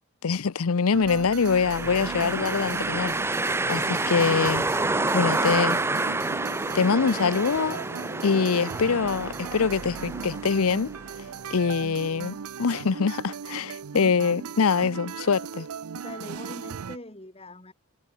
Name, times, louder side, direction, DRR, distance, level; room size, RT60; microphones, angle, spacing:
voice 1, 0.2-3.1 3.7-4.6 5.1-5.8 6.7-7.8 8.2-10.9 11.5-15.7, left 5 dB, 80° left, 0.6 m, -24 dB
sound 1, 0.9-17.0, right 6 dB, 90° right, 0.5 m, -38 dB
sound 2, 1.4-11.2, right 2 dB, 10° right, 0.7 m, -28 dB
voice 2, 4.8-5.6 7.0-7.4 16.0-17.7, left 2 dB, 25° left, 2.8 m, -42 dB
head